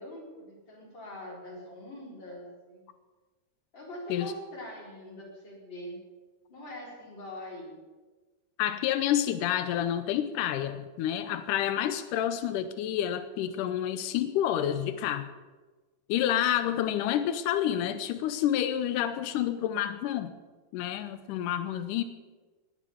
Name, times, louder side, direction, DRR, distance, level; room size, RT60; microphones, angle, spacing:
voice 1, 0.0-2.9 3.7-6.0 6.5-7.7, left 1 dB, 30° left, -3 dB, 4.6 m, -42 dB
voice 2, 8.6-15.3 16.1-20.3 20.7-22.0, left 11 dB, 85° left, 11 dB, 1.8 m, -29 dB
20.0 x 7.3 x 8.4 m, 1.3 s
omnidirectional pair, 4.6 m